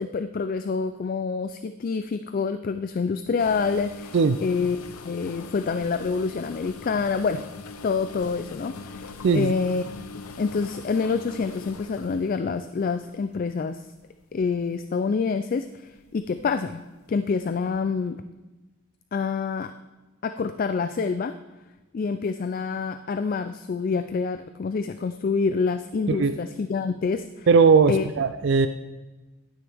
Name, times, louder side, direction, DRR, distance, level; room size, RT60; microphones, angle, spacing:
voice 1, 0.0-4.1 4.4-4.8 5.1-7.4 7.8-9.8 10.4-13.8 14.3-16.8 17.1-18.2 19.1-19.7 20.2-21.3 21.9-27.5 27.9-28.1, left 5 dB, 40° left, 10 dB, 0.3 m, -27 dB
sound 1, 3.4-13.5 14.2-14.5 15.0-15.2 16.0-16.4 16.7-16.8 17.7-17.8, left 4 dB, 90° left, 0.7 m, -42 dB
voice 2, 9.2-9.5 26.1-26.3 27.5-28.7, right 5 dB, 55° right, 10 dB, 0.4 m, -19 dB
11.5 x 9.7 x 3.4 m, 1.1 s
head